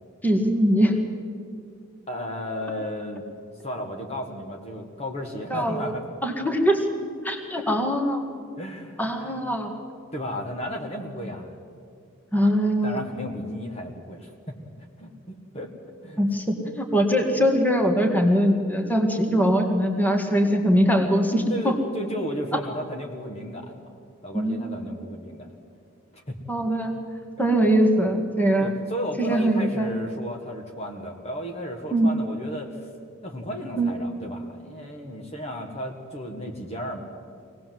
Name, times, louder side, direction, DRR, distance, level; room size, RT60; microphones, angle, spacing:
voice 1, 0.2-0.9 5.5-5.9 6.2-6.9 7.2-8.2 9.0-9.7 12.3-13.0 16.2-21.8 24.3-25.0 26.5-26.9 27.4-28.7 29.2-29.9 31.9-32.1 33.8-33.9, equal, 10° left, 4 dB, 2.0 m, -22 dB
voice 2, 2.1-3.2 3.6-6.0 8.6-9.6 10.1-11.6 12.8-14.6 15.0-15.7 16.0-16.2 21.5-23.9 24.2-25.5 26.1-26.4 27.6-27.7 28.6-32.7 33.2-37.1, equal, 30° left, 2 dB, 1.8 m, -34 dB
24.0 x 18.5 x 7.7 m, 2.3 s
head